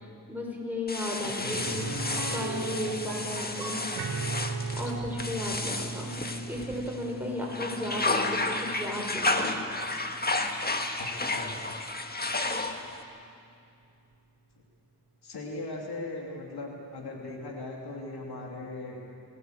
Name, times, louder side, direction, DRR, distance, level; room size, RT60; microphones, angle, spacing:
voice 1, 0.3-1.9 2.3-3.8 4.8-9.5 12.4-12.6, left 1 dB, 5° right, -2 dB, 6.6 m, -34 dB
sound 1, 0.9-7.1 7.4-13.0, left 2 dB, 25° left, 1.7 m, -32 dB
voice 2, 1.4-1.9 11.0-11.6 15.2-19.0, left 2 dB, 80° left, 0 dB, 3.0 m, -39 dB
sound 2, 1.5-11.3 11.6-11.7 14.1-14.2, right 4 dB, 80° right, 2.1 m, -38 dB
22.5 x 17.0 x 8.1 m, 2.5 s
cardioid pair, 55°, 38 cm